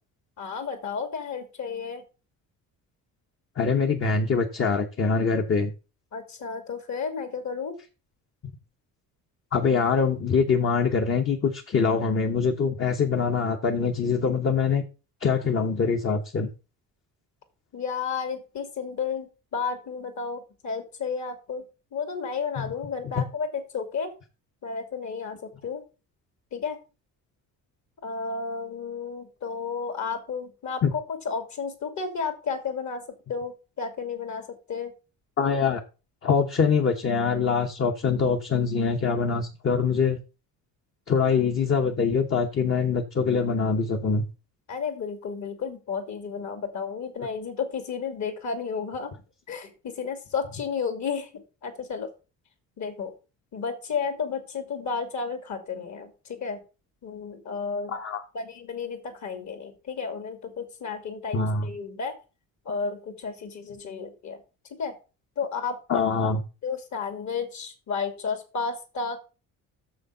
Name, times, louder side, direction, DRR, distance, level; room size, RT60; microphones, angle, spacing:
voice 1, 0.4-2.0 6.1-7.7 17.7-21.6 21.9-24.1 24.6-25.4 25.6-25.8 26.5-26.8 28.0-33.0 33.3-34.9 44.7-49.1 49.5-51.3 51.6-52.1 52.8-53.1 53.5-56.6 57.0-57.9 58.3-62.1 62.7-64.4 64.8-64.9 65.4-66.3 66.6-69.2, left 5 dB, 55° left, 8 dB, 2.5 m, -32 dB
voice 2, 3.6-5.7 9.5-14.8 15.2-16.5 22.6-22.7 30.8-30.9 35.4-35.8 36.2-40.2 41.1-44.2 57.9-58.2 61.3-61.7 65.9-66.4, left 5 dB, 35° left, 3 dB, 1.1 m, -24 dB
7.0 x 6.4 x 5.5 m, 0.32 s
cardioid pair, 130°, 35 cm